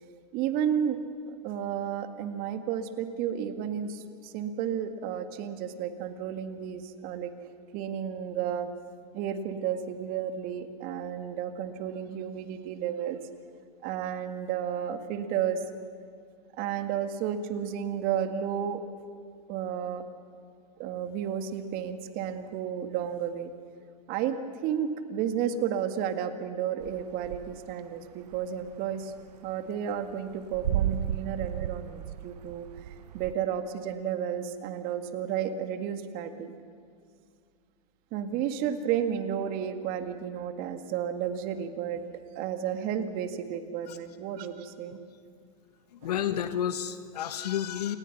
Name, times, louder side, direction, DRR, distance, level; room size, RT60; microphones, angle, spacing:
voice 1, 0.3-1.0 1.3-7.3 7.7-8.7 9.1-13.2 13.8-15.6 16.6-18.8 19.5-20.0 20.8-23.5 24.1-24.4 24.6-29.1 29.4-36.5 38.1-42.0 42.4-45.0 46.0-46.1, right 9 dB, 45° right, 8 dB, 2.0 m, -32 dB
sound 1, 26.8-27.8 28.1-33.3, right 10 dB, 75° right, 0.7 m, -33 dB
voice 2, 45.9-48.0, left 10 dB, 70° left, 10 dB, 1.2 m, -31 dB
28.5 x 19.5 x 6.1 m, 2.2 s
hypercardioid pair, 105°, 21 cm